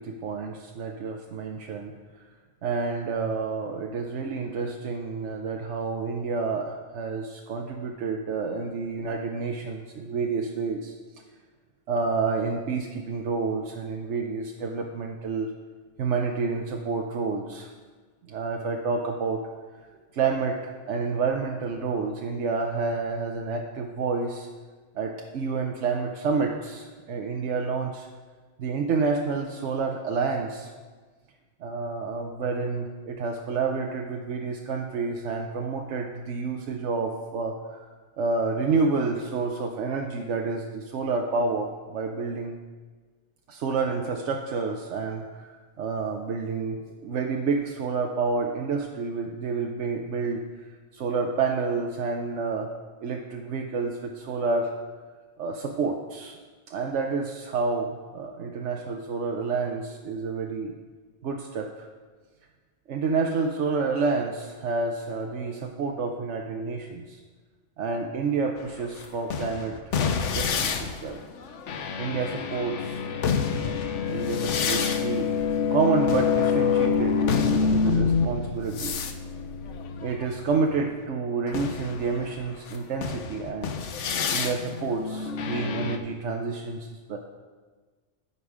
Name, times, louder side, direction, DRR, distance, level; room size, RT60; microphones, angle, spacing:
voice 1, 0.0-1.9 2.6-10.9 11.9-15.5 16.0-17.7 18.2-19.4 20.1-24.5 24.9-28.1 28.6-30.7 31.6-37.8 38.2-42.6 43.5-50.4 50.9-52.7 53.0-54.7 55.4-56.4 56.7-60.7 61.2-61.9 62.9-67.2 67.8-69.8 70.3-71.2 72.0-73.0 73.6-73.8 74.1-75.3 75.7-79.1 80.0-83.7 84.3-87.2, right 4 dB, 80° right, 2 dB, 1.1 m, -29 dB
sound 1, 68.6-80.8 81.5-86.0, left 6 dB, 90° left, 1.1 m, -27 dB
15.0 x 5.6 x 4.8 m, 1.4 s
omnidirectional pair, 1.2 m